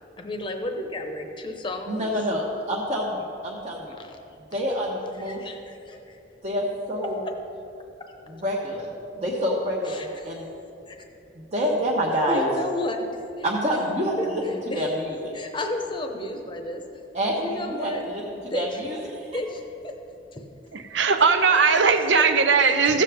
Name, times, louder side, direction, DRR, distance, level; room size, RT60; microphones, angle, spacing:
voice 1, 0.2-2.1 4.0-4.2 5.2-6.2 9.9-10.4 10.9-11.0 12.3-13.2 14.2-14.8 15.3-17.0 17.4-18.0 18.4-18.8 19.3-19.9 22.1-22.2 22.9-23.0, left 2 dB, 25° left, 4 dB, 0.8 m, -33 dB
voice 2, 1.9-3.9 4.5-5.4 6.4-7.2 8.3-8.9 9.1-10.5 11.3-12.5 13.4-14.2 14.5-15.3 17.1-19.3, equal, 35° right, -5 dB, 1.1 m, -27 dB
voice 3, 20.7-23.0, right 5 dB, 85° right, 8 dB, 0.7 m, -19 dB
15.5 x 7.3 x 3.5 m, 2.8 s
head